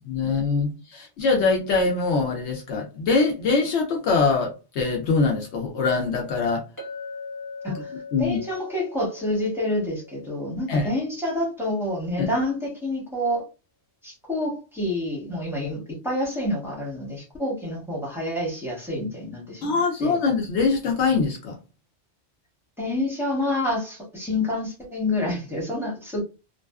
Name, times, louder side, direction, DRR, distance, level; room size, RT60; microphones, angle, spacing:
voice 1, 0.1-6.6 8.1-8.4 10.7-10.9 12.2-12.3 19.6-21.6, left 4 dB, 75° left, 0.9 m, -23 dB
Chink clink, 6.8-11.2, left 4 dB, 15° left, 1.2 m, -40 dB
voice 2, 8.2-13.5 14.0-20.2 22.8-26.2, left 1 dB, ahead, 1.0 m, -28 dB
2.5 x 2.3 x 2.2 m
omnidirectional pair, 1.2 m